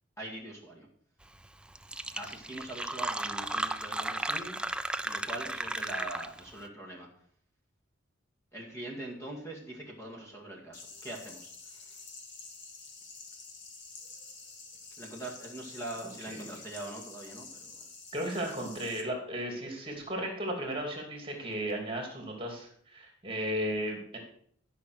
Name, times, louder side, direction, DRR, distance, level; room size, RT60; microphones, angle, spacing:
voice 1, 0.2-0.9 2.2-4.6 5.0-7.1 8.5-12.0 15.0-17.7, right 1 dB, 15° left, -1 dB, 2.1 m, -42 dB
Fill (with liquid), 1.4-1.5 1.8-6.5, right 1 dB, 5° right, 0.3 m, -34 dB
sound 1, 10.7-19.0, left 4 dB, 60° left, 2.1 m, -48 dB
voice 2, 16.2-16.6 18.1-24.2, equal, 25° right, 1 dB, 2.6 m, -35 dB
12.0 x 5.8 x 6.3 m, 0.63 s
head